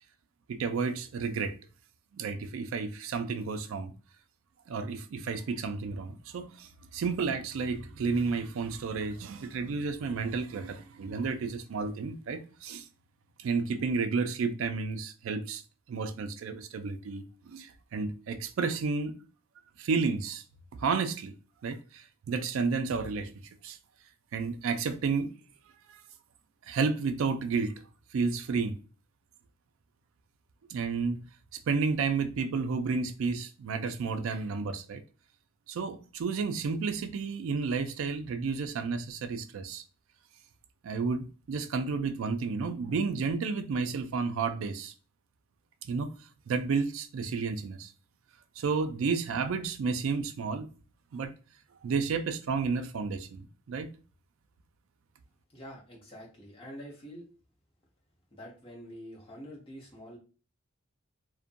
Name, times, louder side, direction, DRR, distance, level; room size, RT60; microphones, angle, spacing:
voice 1, 0.5-1.5 2.1-3.9 4.7-12.9 13.4-15.6 15.9-19.1 19.8-20.4 20.8-21.3 21.6-23.3 23.6-23.8 24.3-25.3 26.7-27.7 28.1-28.8 30.7-31.2 31.7-35.0 35.7-39.8 40.8-44.9 45.8-46.1 46.5-47.9 48.6-50.7 51.1-51.3 51.8-53.9, right 4 dB, 65° right, 0.3 m, -31 dB
voice 2, 55.5-57.2 58.3-60.2, equal, 25° left, 0.9 m, -46 dB
2.5 x 2.2 x 2.5 m
head